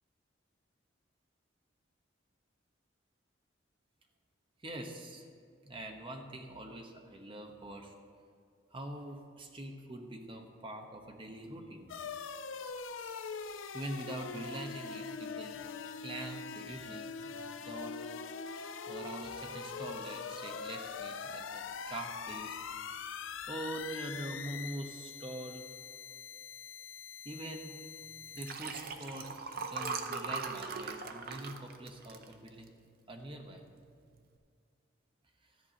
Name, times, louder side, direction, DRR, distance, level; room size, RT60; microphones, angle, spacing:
voice 1, 4.6-5.3 5.6-7.9 8.7-11.9 13.4-15.6 16.0-17.3 17.6-18.0 18.9-22.5 23.1-23.2 23.5-25.7 27.2-27.7 28.3-29.3 29.6-32.7 33.1-33.6, right 1 dB, 25° right, 3 dB, 1.0 m, -44 dB
sound 1, 11.9-28.5, left 5 dB, 85° left, 0.5 m, -43 dB
Liquid, 28.2-32.9 33.4-33.6 33.9-34.0, right 4 dB, 50° right, 0.7 m, -40 dB
13.5 x 4.8 x 8.6 m, 2.3 s
head